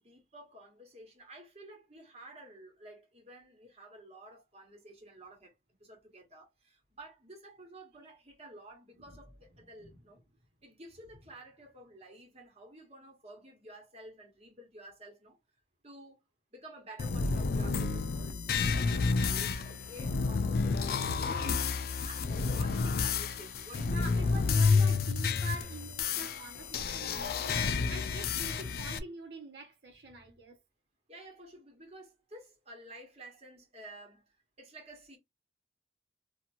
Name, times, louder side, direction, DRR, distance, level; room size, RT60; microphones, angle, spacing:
voice 1, 0.0-5.5 5.8-10.2 10.6-15.4 15.8-16.2 16.5-21.7 22.0-24.4 31.1-34.2 34.6-35.2, right 1 dB, 35° right, 1.4 m, -52 dB
voice 2, 9.6-10.0 23.8-30.6, right 2 dB, 65° right, 1.0 m, -46 dB
sound 1, 17.0-29.0, left 4 dB, 55° left, 0.4 m, -30 dB
2.9 x 2.5 x 2.5 m
head